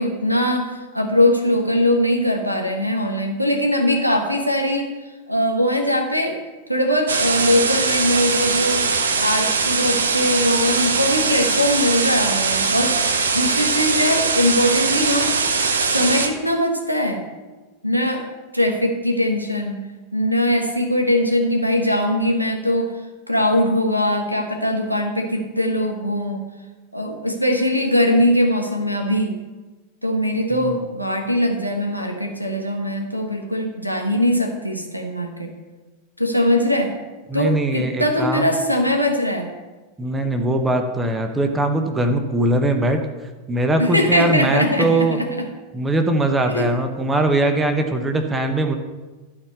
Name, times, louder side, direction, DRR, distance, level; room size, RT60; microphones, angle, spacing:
voice 1, 0.0-4.9 5.3-6.4 6.7-8.8 9.2-12.9 13.3-15.4 15.8-17.2 17.8-18.3 18.5-19.8 20.1-22.9 23.3-26.4 26.9-29.4 30.0-35.5 36.2-36.9 37.3-39.5 43.8-45.3 46.5-46.7, left 1 dB, 90° right, 4 dB, 1.2 m, -21 dB
sound 1, 7.1-16.3, right 4 dB, 70° right, 0.8 m, -21 dB
voice 2, 37.3-38.5 40.0-43.0 43.5-45.2 45.7-48.8, right 1 dB, 10° right, 6 dB, 1.0 m, -21 dB
12.0 x 4.3 x 7.9 m, 1.2 s
figure-of-eight pair, 90°, 0 cm